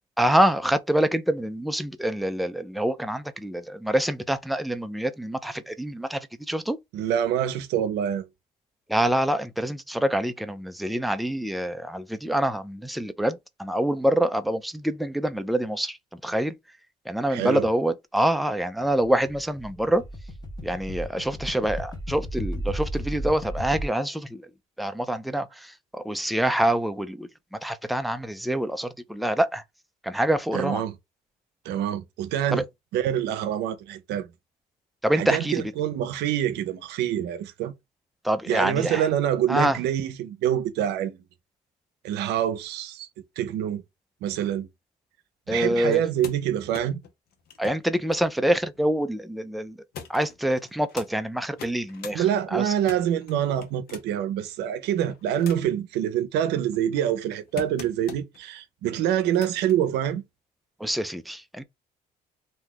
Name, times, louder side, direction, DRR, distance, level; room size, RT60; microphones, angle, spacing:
voice 1, 0.2-6.8 8.9-16.0 16.2-16.5 17.1-20.0 20.6-24.5 24.8-29.6 30.0-30.8 32.5-32.6 35.0-35.5 38.2-39.0 39.5-39.8 45.5-46.0 47.6-49.8 50.1-52.2 52.5-52.6 60.8-61.6, right 1 dB, ahead, 0.3 m, -26 dB
voice 2, 6.9-8.3 17.3-17.7 30.5-30.9 31.6-32.6 32.9-34.3 35.1-37.7 38.5-41.2 42.0-43.1 43.4-43.8 44.2-44.7 45.5-47.0 52.1-60.2, right 10 dB, 85° right, 0.6 m, -26 dB
sound 1, 18.8-23.8, equal, 25° left, 0.9 m, -34 dB
sound 2, 45.8-49.2 49.9-51.1 51.5-52.2 52.6-54.2 54.9-55.8 56.4-58.4 59.1-59.8 60.8-60.9, left 7 dB, 65° left, 0.8 m, -44 dB
2.7 x 2.3 x 3.5 m
cardioid pair, 110°, 17 cm